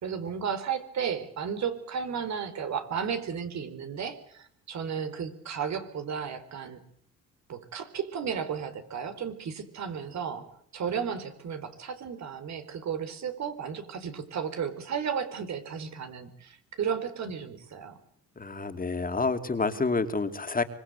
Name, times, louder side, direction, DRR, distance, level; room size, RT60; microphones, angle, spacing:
voice 1, 0.0-6.8 7.5-10.5 10.7-18.0, right 7 dB, 65° right, 9 dB, 4.4 m, -34 dB
voice 2, 18.4-20.6, left 3 dB, 30° left, 8 dB, 2.7 m, -28 dB
25.0 x 23.0 x 8.1 m, 0.65 s
cardioid pair, 90°, 30 cm